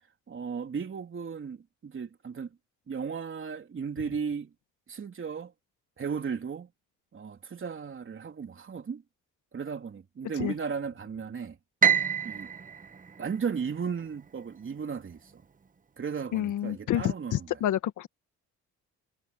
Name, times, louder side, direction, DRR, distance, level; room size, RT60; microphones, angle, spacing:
voice 1, 0.3-2.6 2.9-4.5 4.9-5.5 6.0-6.7 7.1-9.0 9.5-11.6 12.2-12.5 13.2-15.4 16.0-17.6, right 6 dB, 40° right, 3.4 m, -35 dB
Piano, 11.8-14.1, right 7 dB, 25° right, 1.1 m, -27 dB
voice 2, 16.3-18.1, left 12 dB, 80° left, 1.9 m, -29 dB
cardioid pair, 90°, 30 cm